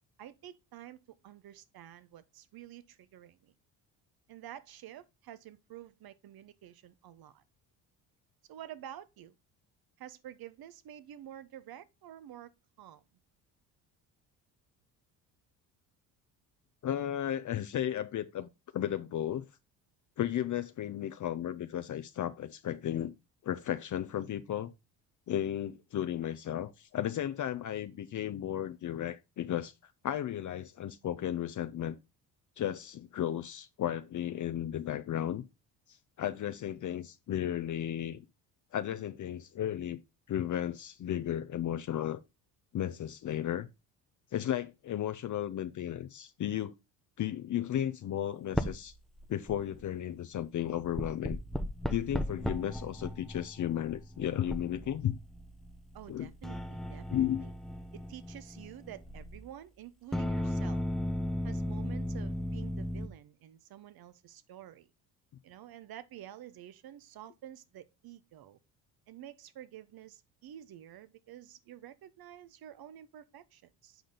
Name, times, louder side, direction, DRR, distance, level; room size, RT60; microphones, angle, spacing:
voice 1, 0.2-3.5 4.3-7.4 8.5-9.3 10.0-12.5 12.8-13.0 55.9-57.5 57.9-60.8 61.4-64.9 65.4-68.6 69.1-74.0, right 11 dB, 55° right, 1.0 m, -49 dB
voice 2, 16.8-19.4 20.2-23.1 23.4-24.7 25.3-32.0 32.6-35.4 36.2-38.2 38.7-40.0 40.3-42.2 42.7-43.7 44.3-46.7 47.2-48.9 49.3-51.4 51.9-55.2 56.1-56.3 57.1-57.4, left 11 dB, 45° left, 0.7 m, -34 dB
sound 1, 48.5-48.9 49.2-49.8 50.6-59.5 60.1-63.1, equal, ahead, 0.9 m, -36 dB
7.9 x 5.0 x 3.9 m
hypercardioid pair, 65°, 43 cm